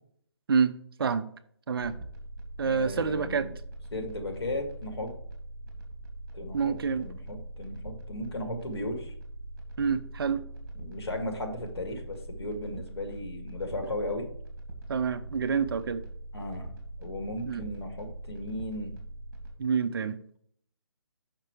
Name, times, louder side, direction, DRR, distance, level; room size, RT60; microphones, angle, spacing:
voice 1, 0.5-1.3 1.7-2.0 2.6-3.5 6.5-7.1 9.8-10.4 14.9-16.0 17.4-17.7 19.6-20.2, right 6 dB, 55° right, 11 dB, 0.8 m, -27 dB
sound 1, 1.8-19.5, right 1 dB, 40° right, 2.5 m, -42 dB
voice 2, 2.6-3.5 3.9-5.1 6.3-9.1 10.7-14.3 16.3-16.7 17.0-19.0, left 1 dB, 65° left, 4 dB, 2.1 m, -36 dB
6.5 x 6.0 x 4.7 m, 0.64 s
hypercardioid pair, 160°, 14 cm